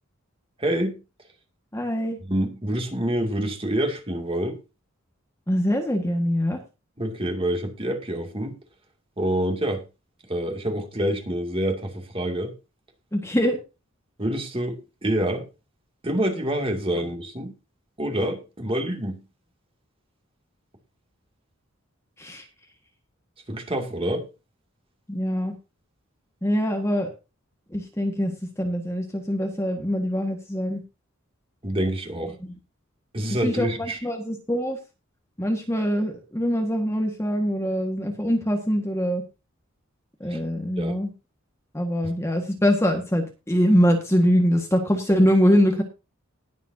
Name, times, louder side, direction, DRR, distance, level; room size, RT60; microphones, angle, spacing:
voice 1, 0.6-1.0 2.3-4.6 7.0-8.6 9.2-9.8 10.3-12.5 14.2-15.5 16.0-17.5 18.0-19.2 23.5-24.3 31.6-32.3 33.1-34.0 40.3-40.4 40.8-41.0, right 1 dB, 25° right, 2.4 m, -27 dB
voice 2, 1.7-2.2 5.5-6.6 13.1-13.6 22.2-22.4 25.1-25.5 26.4-27.1 27.7-30.8 33.4-34.8 35.4-39.2 40.2-41.1 41.7-45.8, equal, 15° left, 1.6 m, -23 dB
19.5 x 7.4 x 2.7 m
head